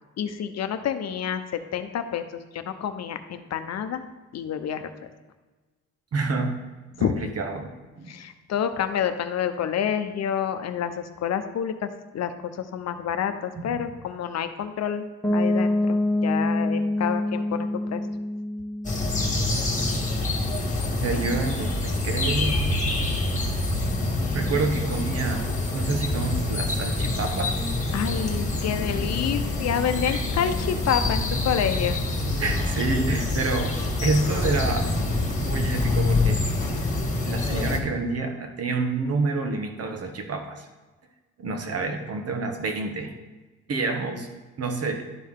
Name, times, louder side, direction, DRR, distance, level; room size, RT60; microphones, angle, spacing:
voice 1, 0.2-2.2 2.5-4.0 4.3-4.8 7.0-7.3 8.1-15.1 15.3-18.0 27.9-32.0, left 8 dB, 60° left, 9 dB, 0.8 m, -28 dB
voice 2, 6.1-6.5 7.0-8.1 13.5-13.8 20.9-22.7 24.3-27.5 30.0-30.2 32.4-34.9 35.4-36.4 37.3-40.7 41.4-43.1 43.7-44.3 44.6-45.1, right 3 dB, 55° right, 5 dB, 1.3 m, -28 dB
Piano, 15.2-20.9, left 1 dB, 10° left, 1.2 m, -27 dB
sound 1, 18.8-37.8, left 2 dB, 25° left, 1.7 m, -26 dB
sound 2, 27.9-37.0, right 3 dB, 20° right, 0.7 m, -39 dB
12.0 x 4.5 x 3.7 m, 1.2 s
cardioid pair, 90°, 30 cm